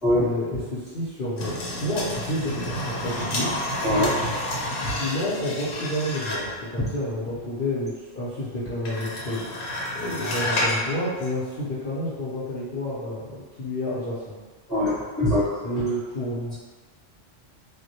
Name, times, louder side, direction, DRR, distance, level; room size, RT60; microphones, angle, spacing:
voice 1, 0.2-3.5 5.0-9.4 9.9-14.4 15.6-16.5, left 1 dB, 55° left, -11 dB, 0.7 m, -30 dB
sound 1, 1.4-6.6 8.9-10.8 11.2-11.3, left 1 dB, 85° left, 1.0 m, -29 dB
voice 2, 3.8-4.2 4.8-4.9 14.7-15.5, left 1 dB, ahead, -11 dB, 0.6 m, -22 dB
2.2 x 2.0 x 2.7 m, 1.4 s
omnidirectional pair, 1.3 m